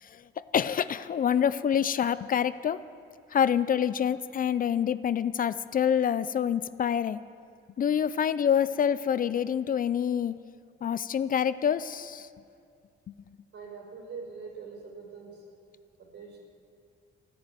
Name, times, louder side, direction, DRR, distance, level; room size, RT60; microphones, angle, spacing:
voice 1, 0.0-2.8 3.3-7.2 7.8-10.3 10.8-12.3, left 8 dB, 45° left, 15 dB, 0.5 m, -27 dB
voice 2, 13.5-15.5 16.0-16.4, right 5 dB, 65° right, 0 dB, 4.7 m, -43 dB
14.0 x 10.5 x 9.1 m, 2.3 s
cardioid pair, 90°, 20 cm